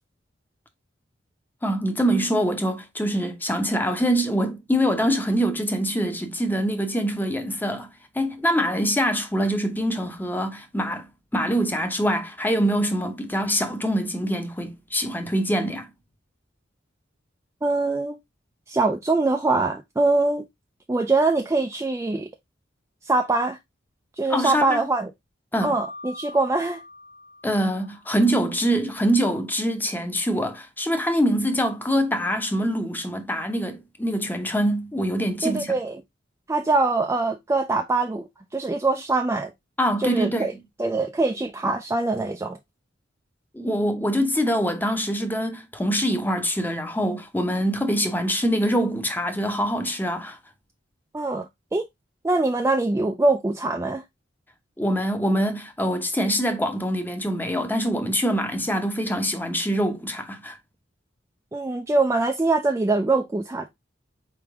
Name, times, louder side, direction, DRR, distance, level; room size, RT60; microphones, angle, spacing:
voice 1, 1.6-7.9 8.1-15.9 24.3-24.9 25.5-25.8 27.4-35.7 39.8-40.5 43.5-50.4 54.8-60.6, equal, 10° left, 0.7 m, -24 dB
voice 2, 17.6-18.2 18.7-20.5 20.9-22.3 23.0-23.6 24.2-25.1 25.6-26.8 35.4-36.0 36.5-38.3 38.5-39.5 40.0-40.5 40.8-42.6 51.1-51.4 51.7-51.9 52.2-54.0 61.5-63.7, right 3 dB, 15° right, 0.3 m, -23 dB
Mallet percussion, 25.6-28.4, left 2 dB, 65° left, 1.4 m, -42 dB
4.5 x 3.5 x 3.4 m
head